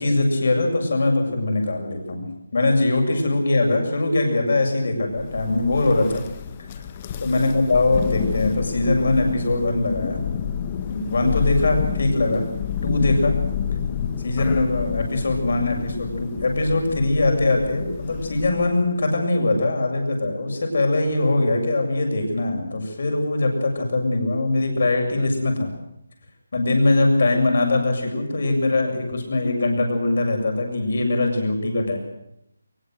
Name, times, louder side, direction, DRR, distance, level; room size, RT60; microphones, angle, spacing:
voice 1, 0.0-2.2 2.5-6.2 7.2-10.2 10.9-12.5 12.8-13.3 14.2-25.7 26.5-32.0, left 2 dB, 50° left, 3 dB, 7.3 m, -21 dB
Thunder, 5.1-18.8, left 8 dB, 20° left, 1.3 m, -29 dB
22.5 x 21.0 x 8.0 m, 0.80 s
hypercardioid pair, 175°, 0 cm